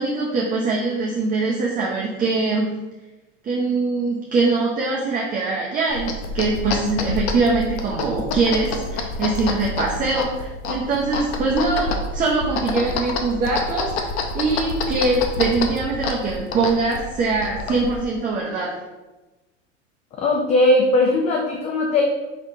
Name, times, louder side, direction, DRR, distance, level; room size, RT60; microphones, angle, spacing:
voice 1, 0.0-2.7 3.4-18.7, right 3 dB, 20° right, -3 dB, 0.7 m, -23 dB
sound 1, 5.9-18.0, left 3 dB, 65° left, 0.8 m, -28 dB
voice 2, 20.1-22.0, left 2 dB, 20° left, 1 dB, 0.3 m, -19 dB
5.0 x 3.4 x 2.7 m, 1.1 s
hypercardioid pair, 100°, 36 cm